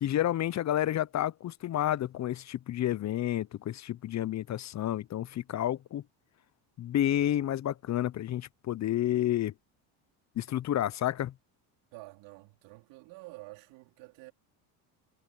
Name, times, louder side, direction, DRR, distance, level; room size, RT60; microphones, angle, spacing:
voice 1, 0.0-6.0 6.8-9.5 10.4-11.3, left 12 dB, 40° left, 0.7 m, -30 dB
voice 2, 11.9-14.3, right 22 dB, 75° right, 3.6 m, -49 dB
supercardioid pair, 100°, 43 cm